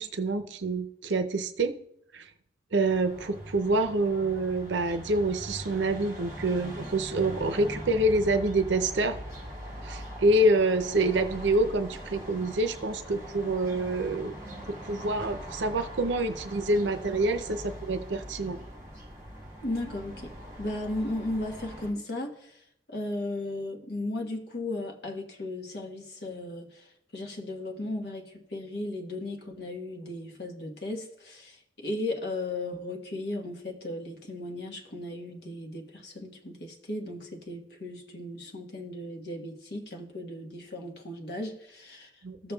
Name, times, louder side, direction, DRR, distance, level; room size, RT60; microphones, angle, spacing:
voice 1, 0.0-1.7 2.1-2.3 2.7-9.2 9.8-14.4 14.8-18.6 42.2-42.4, right 2 dB, 80° right, 8 dB, 0.6 m, -27 dB
sound 1, 2.8-21.9, equal, 20° right, 2.1 m, -42 dB
voice 2, 19.6-20.3 20.6-42.5, left 1 dB, 60° left, 1 dB, 1.3 m, -36 dB
14.5 x 6.8 x 2.3 m, 0.74 s
head